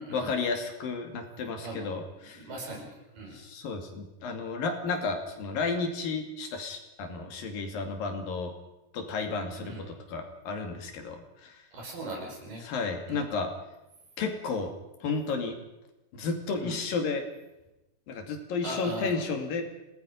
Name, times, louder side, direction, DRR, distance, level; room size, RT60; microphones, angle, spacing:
voice 1, 0.1-2.5 3.3-8.5 8.9-11.6 12.6-13.5 14.2-14.7 15.0-15.6 16.1-17.2 18.1-19.6, left 4 dB, 85° left, 4 dB, 4.2 m, -32 dB
voice 2, 2.3-3.3 9.6-9.8 11.7-12.7 13.1-13.2 16.6-16.8 18.6-19.1, right 1 dB, 75° right, 0 dB, 7.2 m, -39 dB
26.5 x 18.5 x 5.4 m, 0.98 s
omnidirectional pair, 4.0 m